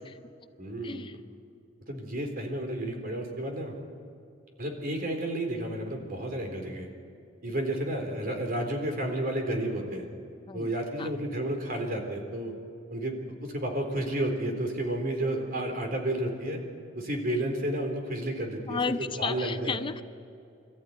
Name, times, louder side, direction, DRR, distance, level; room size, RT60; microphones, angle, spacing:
voice 1, 0.6-1.1 1.9-3.7 4.6-6.9 7.4-10.1 10.5-12.5 12.9-16.6 17.0-19.8, right 1 dB, 50° right, 3 dB, 3.9 m, -31 dB
voice 2, 18.7-20.0, left 4 dB, 25° left, 11 dB, 0.5 m, -33 dB
26.0 x 14.0 x 9.5 m, 2.5 s
head